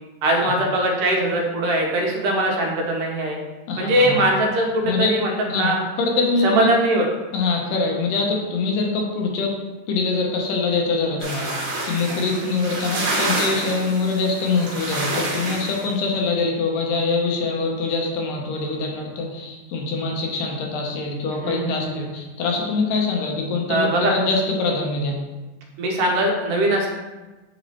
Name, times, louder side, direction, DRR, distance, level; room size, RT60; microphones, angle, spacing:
voice 1, 0.2-3.4 3.8-5.8 6.4-7.1 12.4-12.5 21.4-22.1 23.7-24.2 25.8-26.9, right 1 dB, 80° right, 0 dB, 2.6 m, -21 dB
voice 2, 3.7-4.2 4.8-5.1 5.5-6.7 7.3-9.5 9.9-11.5 11.8-23.8 24.1-25.2, left 3 dB, 90° left, 0 dB, 2.7 m, -24 dB
sound 1, 11.2-15.9, right 2 dB, 60° right, 2.6 m, -28 dB
8.4 x 3.1 x 4.2 m, 1.2 s
omnidirectional pair, 3.7 m